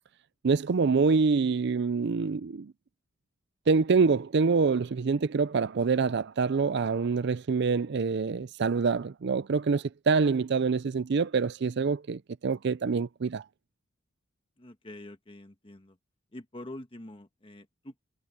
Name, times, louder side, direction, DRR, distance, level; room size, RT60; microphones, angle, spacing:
voice 1, 0.4-2.7 3.7-13.4, right 4 dB, 55° right, 0.5 m, -26 dB
voice 2, 14.6-16.0 16.3-18.0, left 1 dB, 25° left, 1.3 m, -45 dB
head